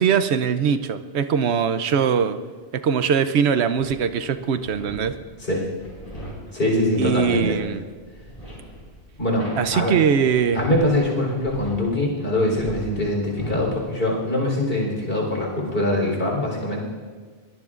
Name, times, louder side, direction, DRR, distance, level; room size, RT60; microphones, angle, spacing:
voice 1, 0.0-2.4 2.7-5.2 7.0-7.8 9.6-10.6, right 7 dB, 85° right, 11 dB, 1.0 m, -21 dB
sound 1, 3.8-11.1 11.4-12.0 12.4-13.8, equal, 35° left, 5.6 m, -38 dB
voice 2, 6.5-7.6 9.2-9.9 10.5-16.8, left 1 dB, 60° left, -1 dB, 4.2 m, -23 dB
22.0 x 17.5 x 2.5 m, 1.5 s
omnidirectional pair, 1.1 m